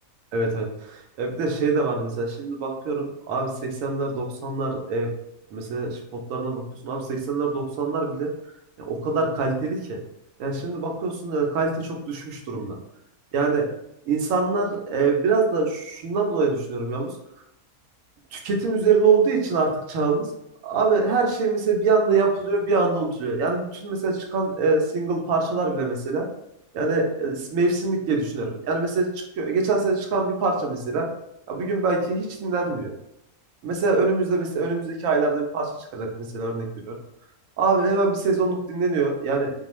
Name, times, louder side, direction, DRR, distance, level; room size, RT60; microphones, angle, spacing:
voice 1, 0.3-5.1 5.5-6.0 6.3-8.3 8.9-10.0 10.4-12.7 13.3-13.7 14.1-17.1 18.3-20.3 20.6-26.3 26.7-29.1 29.4-31.1 31.5-32.9 33.6-36.9 37.6-39.7, right 4 dB, 75° right, 1 dB, 1.0 m, -24 dB
2.4 x 2.3 x 2.9 m, 0.81 s
omnidirectional pair, 1.4 m